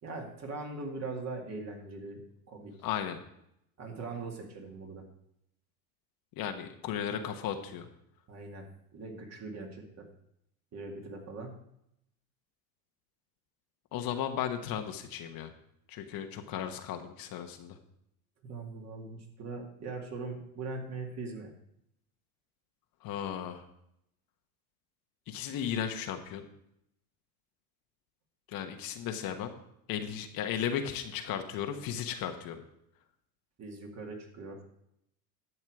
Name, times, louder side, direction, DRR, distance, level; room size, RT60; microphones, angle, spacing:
voice 1, 0.0-2.7 3.8-5.0 8.3-8.7 8.9-10.1 10.7-11.6 18.4-21.5 33.6-34.6, right 3 dB, 35° right, 2 dB, 2.3 m, -41 dB
voice 2, 2.8-3.2 6.4-7.9 13.9-15.5 15.9-17.8 23.0-23.6 25.3-26.5 28.5-29.5 29.9-32.6, left 9 dB, 50° left, 6 dB, 1.2 m, -35 dB
11.0 x 7.2 x 4.8 m, 0.77 s
supercardioid pair, 105°, 45 cm